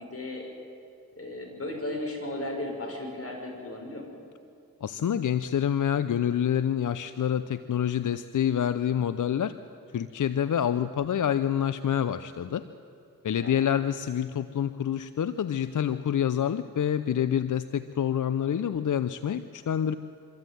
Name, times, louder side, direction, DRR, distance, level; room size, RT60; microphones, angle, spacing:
voice 1, 0.1-0.5 1.2-4.1 13.3-13.5, left 1 dB, 40° left, 1 dB, 6.4 m, -35 dB
voice 2, 4.8-9.5 9.9-12.7 13.2-19.9, left 9 dB, 60° left, 13 dB, 0.7 m, -27 dB
25.0 x 14.0 x 9.2 m, 2.4 s
cardioid pair, 50°, 34 cm